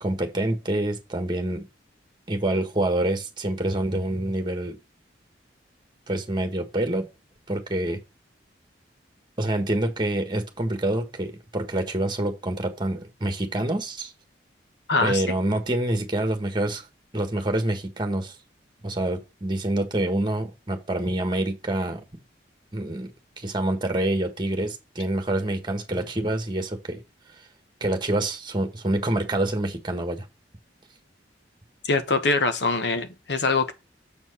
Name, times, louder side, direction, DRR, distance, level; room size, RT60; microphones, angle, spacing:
voice 1, 0.0-1.7 2.3-4.8 6.1-7.1 7.5-8.0 9.4-14.1 15.0-16.8 17.1-18.3 18.8-22.0 22.7-23.1 23.4-27.0 27.8-30.2, right 1 dB, 25° right, 1.4 m, -26 dB
voice 2, 14.9-15.2 31.8-33.7, left 3 dB, 65° left, 1.1 m, -23 dB
7.2 x 4.6 x 5.5 m
head